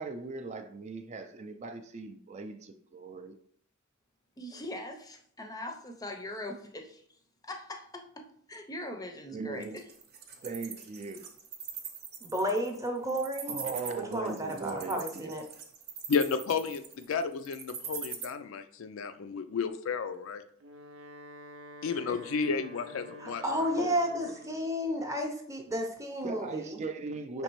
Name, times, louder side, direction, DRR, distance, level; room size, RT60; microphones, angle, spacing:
voice 1, 0.0-3.4 9.3-9.9 10.4-11.3 13.5-15.4 26.2-27.4, right 4 dB, 35° right, 7 dB, 0.3 m, -39 dB
voice 2, 4.4-7.0 7.4-9.6 22.1-22.2, left 1 dB, 20° left, 3 dB, 0.6 m, -41 dB
Wild animals, 9.6-18.2, right 7 dB, 50° right, 0.8 m, -41 dB
voice 3, 12.2-13.6 14.0-15.4 23.2-26.8 27.3-27.4, equal, 15° right, 2 dB, 0.7 m, -32 dB
voice 4, 16.1-20.4 21.8-23.4 23.8-23.9, left 5 dB, 75° left, 10 dB, 0.4 m, -32 dB
Wind instrument woodwind instrument, 20.5-24.7, equal, 85° right, 0.6 m, -49 dB
5.2 x 3.2 x 3.0 m, 0.62 s
head